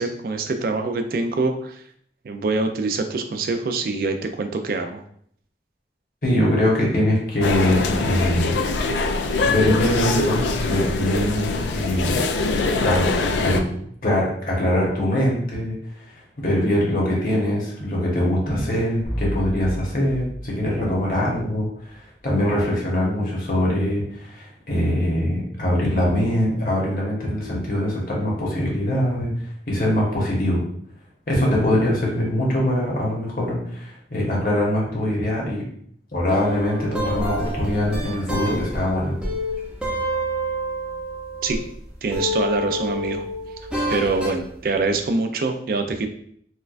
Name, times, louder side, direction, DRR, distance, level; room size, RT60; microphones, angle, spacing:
voice 1, 0.0-1.8 2.2-5.0 41.4-41.6 42.0-43.3 43.9-46.1, right 3 dB, 55° right, 6 dB, 0.3 m, -24 dB
voice 2, 6.2-8.6 9.4-12.2 12.8-13.7 14.0-29.3 29.7-30.6 31.3-35.6 36.1-39.1, left 1 dB, 50° left, -3 dB, 1.1 m, -23 dB
sound 1, 7.4-13.6, left 3 dB, 85° left, 0.3 m, -23 dB
sound 2, 19.1-21.9, equal, 70° left, 1.2 m, -32 dB
sound 3, 36.3-41.8 42.1-44.4, equal, 5° right, 0.7 m, -28 dB
4.3 x 2.3 x 2.4 m, 0.64 s
head